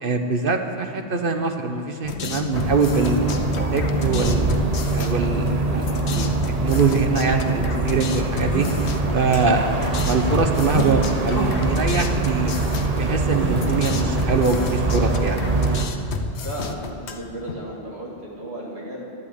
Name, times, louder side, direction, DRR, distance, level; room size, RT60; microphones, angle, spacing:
voice 1, 0.0-3.3 3.7-4.5 4.9-8.7 9.1-9.8 10.1-12.5 12.9-15.4, right 4 dB, 55° right, 5 dB, 1.2 m, -23 dB
sound 1, 2.0-17.5, left 5 dB, 80° left, 1.1 m, -32 dB
sound 2, 2.5-15.9, right 3 dB, 40° right, 1.1 m, -24 dB
sound 3, 6.9-7.0 7.7-7.9 8.5-8.8 10.7-11.0 11.3-11.6 13.4-13.6, right 2 dB, 20° right, 2.2 m, -29 dB
voice 2, 16.4-19.0, right 1 dB, 75° right, -4 dB, 2.6 m, -34 dB
11.5 x 11.0 x 8.2 m, 2.6 s
omnidirectional pair, 1.1 m